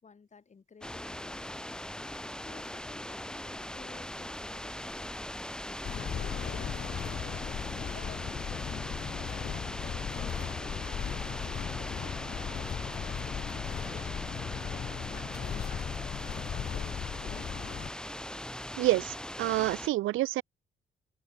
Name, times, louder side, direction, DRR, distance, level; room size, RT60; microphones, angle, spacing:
voice 1, 0.0-1.8 2.4-8.8 9.3-17.0, left 5 dB, 35° left, 6.0 m, -57 dB
sound 1, 0.8-19.9, left 1 dB, 5° left, 0.8 m, -40 dB
sound 2, 5.8-17.9, left 8 dB, 50° left, 2.4 m, -37 dB
voice 2, 18.8-20.4, right 16 dB, 85° right, 0.8 m, -28 dB
cardioid pair, 90°, 20 cm